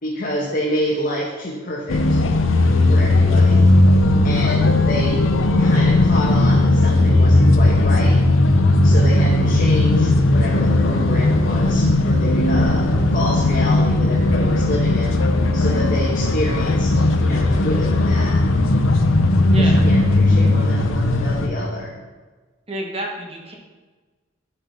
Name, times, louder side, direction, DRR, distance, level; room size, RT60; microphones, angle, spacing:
voice 1, 0.0-2.2 2.9-3.6 4.2-5.2 5.6-8.2 8.8-18.4 19.6-22.0, left 1 dB, 40° left, -4 dB, 1.3 m, -28 dB
sound 1, 1.9-21.5, left 2 dB, 80° left, 0.7 m, -16 dB
voice 2, 19.5-19.8 22.7-23.5, right 1 dB, 30° right, 0 dB, 1.3 m, -29 dB
12.0 x 5.5 x 4.1 m, 1.3 s
head